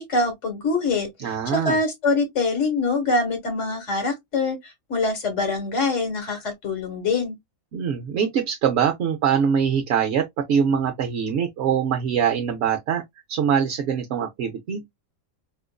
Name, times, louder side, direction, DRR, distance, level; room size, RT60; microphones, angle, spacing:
voice 1, 0.0-7.3, left 3 dB, 60° left, 1.6 m, -24 dB
voice 2, 1.2-1.8 7.7-13.0 13.3-14.8, right 7 dB, 65° right, 0.7 m, -23 dB
4.3 x 2.5 x 2.2 m
omnidirectional pair, 1.5 m